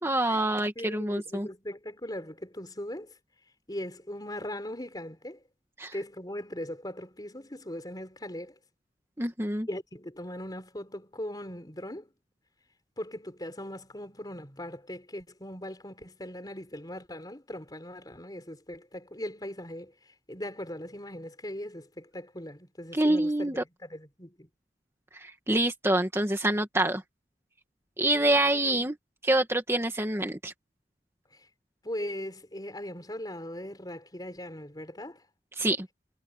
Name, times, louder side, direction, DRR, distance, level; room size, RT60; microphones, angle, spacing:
voice 1, 0.0-1.5 5.8-5.9 9.2-9.7 22.9-23.6 25.1-27.0 28.0-29.0 29.2-30.5 35.6-35.9, right 1 dB, 15° right, 2.1 m, -26 dB
voice 2, 0.8-3.1 3.7-5.4 5.9-8.6 9.7-12.1 13.0-24.5 31.3-31.5 31.8-35.2, left 1 dB, 25° left, 4.3 m, -39 dB
head